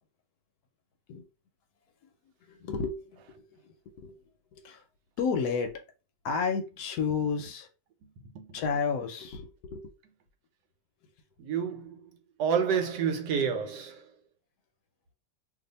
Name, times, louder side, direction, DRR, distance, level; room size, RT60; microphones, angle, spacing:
voice 1, 2.4-4.2 4.5-4.8 5.2-5.8 6.2-7.7 8.5-9.9, left 5 dB, 70° left, 1.0 m, -32 dB
voice 2, 8.0-8.6 11.4-12.1 12.4-14.1, right 7 dB, 80° right, 1.2 m, -30 dB
2.7 x 2.4 x 3.9 m
omnidirectional pair, 1.9 m